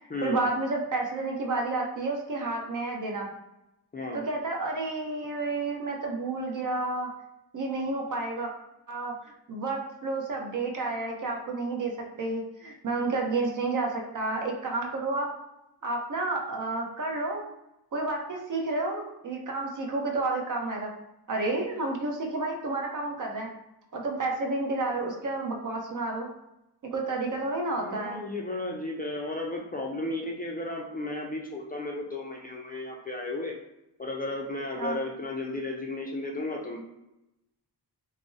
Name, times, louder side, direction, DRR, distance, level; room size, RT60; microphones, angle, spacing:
voice 1, 0.2-3.3 4.1-7.1 7.5-8.5 8.9-9.1 9.5-15.3 15.8-17.4 17.9-20.9 21.3-23.5 23.9-26.3 26.8-28.2 34.8-35.0, right 2 dB, 50° right, 1 dB, 0.7 m, -30 dB
voice 2, 27.8-33.6 34.0-36.8, left 2 dB, 25° left, -1 dB, 0.3 m, -34 dB
2.5 x 2.0 x 3.7 m, 0.89 s
wide cardioid pair, 100°, 41 cm